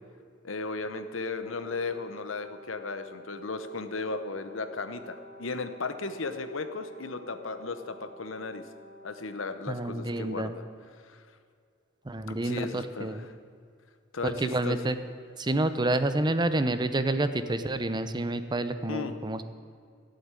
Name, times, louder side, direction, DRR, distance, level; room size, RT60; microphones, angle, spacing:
voice 1, 0.4-8.6 9.0-10.6 11.0-11.2 12.3-13.3 14.1-14.8 18.9-19.2, left 3 dB, 80° left, 9 dB, 1.0 m, -35 dB
Brass instrument, 1.4-10.1, equal, 50° right, 2.7 m, -50 dB
voice 2, 9.7-10.6 12.1-13.2 14.2-15.0 15.4-19.4, right 2 dB, 20° right, 11 dB, 0.7 m, -28 dB
14.5 x 7.9 x 9.7 m, 2.2 s
head